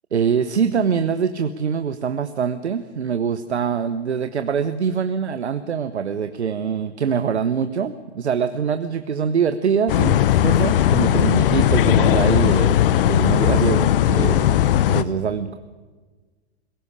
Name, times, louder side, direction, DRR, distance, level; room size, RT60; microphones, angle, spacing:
voice 1, 0.1-12.8 13.1-14.5 14.9-15.6, right 6 dB, 80° right, 10 dB, 1.1 m, -23 dB
sound 1, 9.9-15.0, left 11 dB, 55° left, 1.0 m, -17 dB
20.5 x 17.5 x 9.8 m, 1.4 s
figure-of-eight pair, 110°, 33 cm